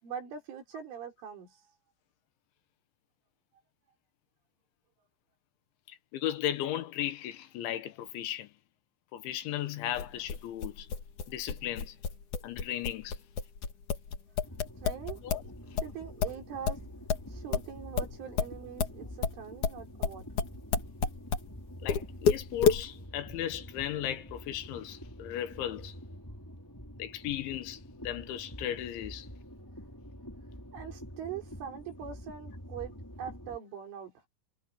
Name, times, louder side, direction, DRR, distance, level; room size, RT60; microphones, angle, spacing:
voice 1, 0.0-1.6 14.8-15.2 15.8-16.8 17.3-20.3 30.7-34.1, right 8 dB, 75° right, 6.7 m, -42 dB
voice 2, 5.9-8.5 9.1-10.9 11.3-12.0 12.4-13.2 15.2-15.4 21.8-26.0 27.0-29.3, left 11 dB, 75° left, 3.6 m, -36 dB
sound 1, 9.9-15.5 15.8-21.5 21.9-22.8, left 6 dB, 45° left, 3.6 m, -30 dB
sound 2, 14.4-33.6, equal, 5° left, 3.7 m, -47 dB
omnidirectional pair, 5.6 m